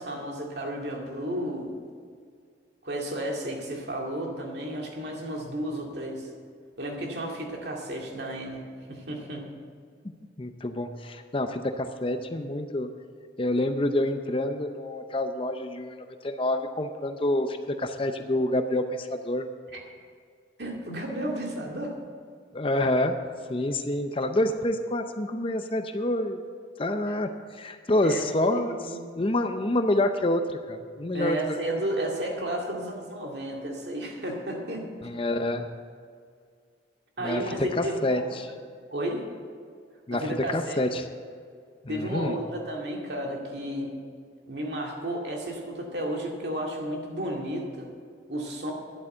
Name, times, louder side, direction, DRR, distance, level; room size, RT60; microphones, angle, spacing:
voice 1, 0.0-1.8 2.8-6.3 6.8-8.6 8.9-9.5 19.7-19.8 20.6-21.9 27.1-27.2 28.0-29.1 31.1-34.9 37.2-38.4 38.9-39.2 40.1-40.8 41.9-44.0 44.4-47.9 48.3-48.7, right 1 dB, 60° right, 0 dB, 2.2 m, -33 dB
voice 2, 10.4-12.9 13.4-19.5 22.5-23.2 23.5-26.4 26.8-28.8 29.1-31.6 35.0-35.8 37.2-38.5 40.1-41.1 41.8-42.4, left 1 dB, 30° left, 7 dB, 0.6 m, -27 dB
11.5 x 8.1 x 7.7 m, 2.1 s
head